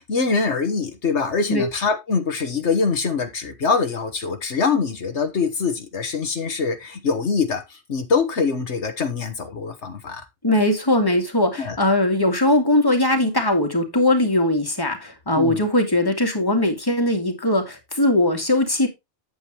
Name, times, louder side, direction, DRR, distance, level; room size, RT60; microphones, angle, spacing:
voice 1, 0.0-10.2 11.6-11.8 15.4-15.6, left 5 dB, 75° left, 1.6 m, -24 dB
voice 2, 10.4-18.9, left 1 dB, 20° left, 2.3 m, -20 dB
9.3 x 8.6 x 3.0 m
omnidirectional pair, 1.2 m